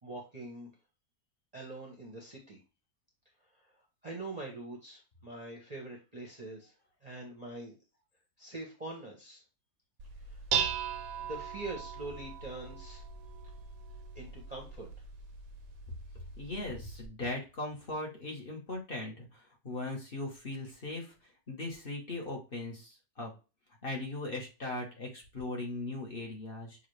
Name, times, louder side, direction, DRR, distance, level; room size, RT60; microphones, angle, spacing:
voice 1, 0.0-0.7 1.5-2.6 4.0-6.7 7.0-7.7 8.4-9.4 10.3-10.6 11.2-13.0 14.1-14.9, right 2 dB, 30° right, -2 dB, 0.8 m, -43 dB
Dishes pots and pans, 10.0-17.1, right 7 dB, 70° right, 0.9 m, -39 dB
voice 2, 16.4-21.1 21.5-23.3 23.8-26.9, left 2 dB, 35° left, 0 dB, 1.2 m, -39 dB
6.5 x 2.4 x 3.2 m, 0.31 s
omnidirectional pair, 1.8 m